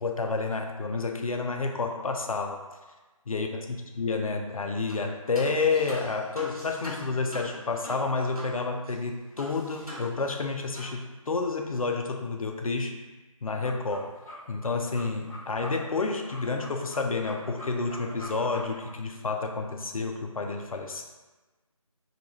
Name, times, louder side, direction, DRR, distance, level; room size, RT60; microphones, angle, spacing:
voice 1, 0.0-2.6 3.3-3.7 4.0-13.0 13.4-14.1 14.5-21.0, left 4 dB, 75° left, 3 dB, 0.4 m, -30 dB
sound 1, 4.9-5.1 5.3-8.6 8.8-8.9 9.4-10.5 10.7-10.9, equal, 90° right, 0.9 m, -42 dB
sound 2, 13.5-18.9, left 1 dB, 10° right, 0.5 m, -44 dB
2.3 x 2.1 x 3.0 m, 1.2 s
figure-of-eight pair, 160°, 18 cm